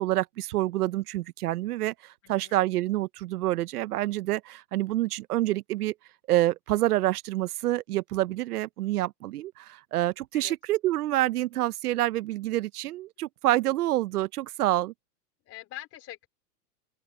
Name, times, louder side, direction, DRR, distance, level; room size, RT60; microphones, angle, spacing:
voice 1, 0.0-5.9 6.3-14.9, right 15 dB, 70° right, 0.9 m, -27 dB
voice 2, 2.2-2.6 10.3-10.6 15.5-16.3, left 14 dB, 30° left, 4.5 m, -44 dB
open air
hypercardioid pair, 140°, 47 cm